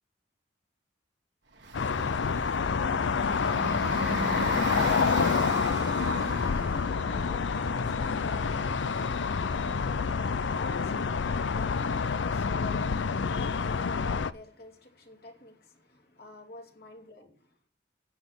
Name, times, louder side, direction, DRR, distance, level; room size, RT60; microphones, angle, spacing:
Bus, 1.5-13.8, right 2 dB, 65° right, 1.6 m, -40 dB
sound 1, 1.7-14.3, left 5 dB, 75° left, 0.5 m, -28 dB
voice 1, 5.5-17.3, left 1 dB, 55° left, 2.8 m, -47 dB
10.0 x 7.1 x 7.4 m
head